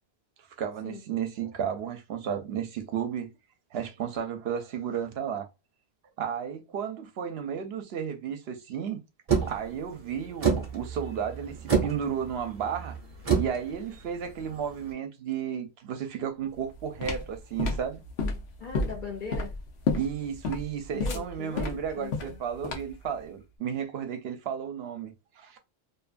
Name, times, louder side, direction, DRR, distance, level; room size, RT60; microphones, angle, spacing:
voice 1, 0.6-3.3 3.7-5.5 6.2-9.0 9.5-12.9 13.4-18.0 20.0-25.6, right 8 dB, 75° right, 0.8 m, -33 dB
sound 1, 9.3-14.9, right 6 dB, 40° right, 0.8 m, -30 dB
sound 2, 16.6-23.1, left 3 dB, 85° left, 0.9 m, -31 dB
voice 2, 18.6-19.5 20.9-22.4, left 6 dB, 55° left, 0.7 m, -39 dB
2.6 x 2.4 x 2.4 m
omnidirectional pair, 1.1 m